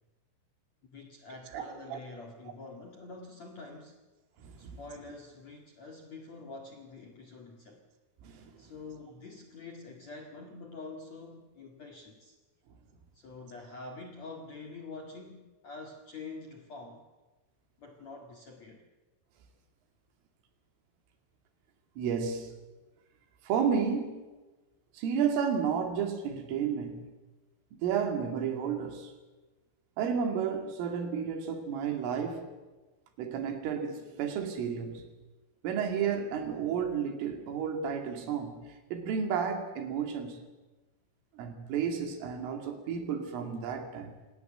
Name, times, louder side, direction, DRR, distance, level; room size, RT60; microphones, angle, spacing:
voice 1, 0.9-4.0 4.6-7.8 8.6-12.4 13.1-17.0 17.8-18.8, left 3 dB, 55° left, 2.1 m, -46 dB
voice 2, 1.5-2.0 4.4-4.7 8.2-8.5 22.0-22.5 23.4-24.2 24.9-27.1 27.7-29.1 30.0-32.5 33.2-35.1 35.6-40.4 41.3-44.2, right 7 dB, 75° right, 4.9 m, -32 dB
27.0 x 18.5 x 7.9 m
omnidirectional pair, 5.9 m